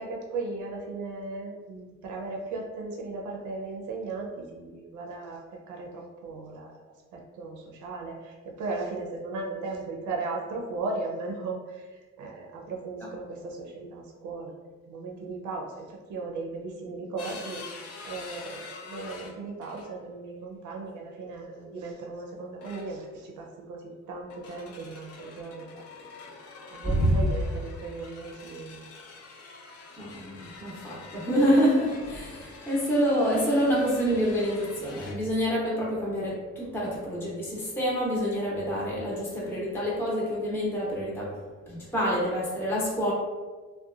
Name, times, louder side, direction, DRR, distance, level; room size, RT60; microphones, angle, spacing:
voice 1, 0.0-6.8 7.1-14.5 14.8-25.7 26.1-26.3 26.7-28.9, right 3 dB, 80° right, -1 dB, 0.6 m, -37 dB
sound 1, 17.2-20.1 21.4-21.6 22.6-23.2 24.2-35.1, left 4 dB, 55° left, 0.6 m, -46 dB
voice 2, 26.8-27.2 30.0-43.1, equal, 5° left, -5 dB, 0.7 m, -27 dB
2.7 x 2.2 x 2.4 m, 1.3 s
cardioid pair, 90°, 30 cm